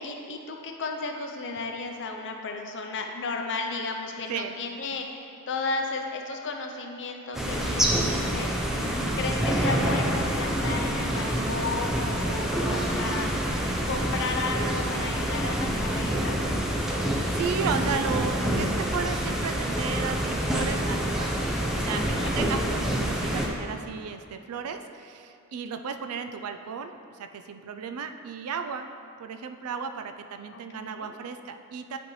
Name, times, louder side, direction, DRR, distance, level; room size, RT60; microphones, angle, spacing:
voice 1, 0.0-8.5 8.8-13.3 13.8-16.4 22.0-22.3 30.5-31.1, left 3 dB, 55° left, 3 dB, 0.6 m, -34 dB
sound 1, 7.3-23.5, equal, ahead, 0.6 m, -27 dB
voice 2, 8.8-9.2 16.8-21.3 21.7-28.9 29.2-32.0, right 6 dB, 75° right, 7 dB, 0.4 m, -34 dB
10.0 x 4.4 x 3.1 m, 2.5 s
head